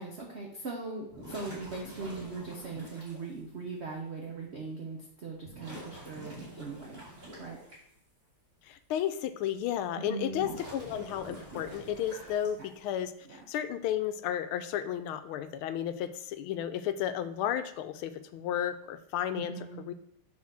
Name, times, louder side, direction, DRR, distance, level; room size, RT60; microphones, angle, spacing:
voice 1, 0.0-7.0 7.3-7.6 10.0-10.5 12.6-12.7 13.2-13.4 19.3-19.8, right 4 dB, 50° right, 0 dB, 0.8 m, -40 dB
sound 1, 1.1-3.2 4.2-4.3 5.4-7.8 10.2-12.8, equal, 35° right, 3.3 m, -46 dB
voice 2, 8.6-19.5 19.9-20.0, left 10 dB, 80° left, 11 dB, 1.4 m, -33 dB
7.2 x 4.1 x 6.2 m, 0.74 s
omnidirectional pair, 2.3 m